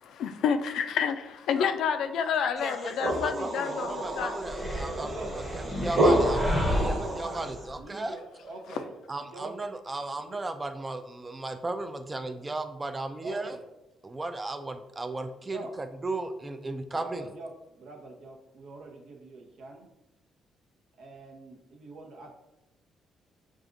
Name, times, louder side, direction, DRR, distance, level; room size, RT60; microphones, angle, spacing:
voice 1, 0.0-4.3 8.7-8.8, left 7 dB, 75° left, 8 dB, 0.3 m, -29 dB
voice 2, 2.6-8.2 9.1-13.6 14.0-17.3, right 2 dB, 20° right, 8 dB, 0.4 m, -36 dB
sound 1, 2.6-7.6, right 1 dB, 45° right, 1.1 m, -29 dB
sound 2, 4.4-7.8, left 1 dB, 10° left, 0.7 m, -32 dB
voice 3, 5.0-5.4 5.8-6.2 6.7-7.5 7.8-8.9 9.3-9.5 10.2-10.4 13.2-13.6 15.5-15.7 16.9-17.5 17.8-19.9 21.0-22.3, right 3 dB, 75° right, 1 dB, 0.7 m, -43 dB
6.4 x 2.4 x 2.5 m, 0.96 s
cardioid pair, 90°, 0 cm